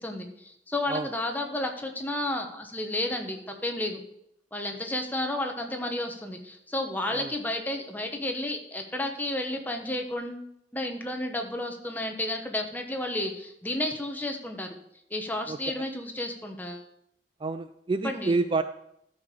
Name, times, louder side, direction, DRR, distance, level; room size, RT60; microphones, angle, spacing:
voice 1, 0.0-4.0 4.5-14.8 15.1-16.8 18.0-18.3, left 1 dB, 10° left, 3 dB, 1.2 m, -32 dB
voice 2, 17.4-18.6, right 3 dB, 30° right, 11 dB, 0.3 m, -28 dB
13.0 x 5.2 x 6.9 m, 0.77 s
head